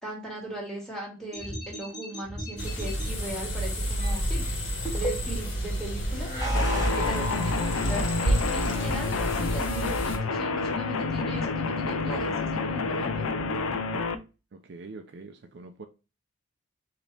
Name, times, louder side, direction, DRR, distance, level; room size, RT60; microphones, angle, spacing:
voice 1, 0.0-4.5 4.9-6.3 6.7-13.3, right 1 dB, ahead, 1.8 m, -38 dB
sound 1, 1.3-3.1 4.0-5.5 6.1-8.3, equal, 20° left, 1.7 m, -33 dB
sound 2, 2.6-10.2, right 1 dB, 65° left, 1.7 m, -30 dB
sound 3, 6.5-14.2, left 4 dB, 85° left, 0.5 m, -29 dB
voice 2, 14.5-15.9, right 3 dB, 55° right, 0.5 m, -44 dB
5.1 x 2.9 x 3.3 m
head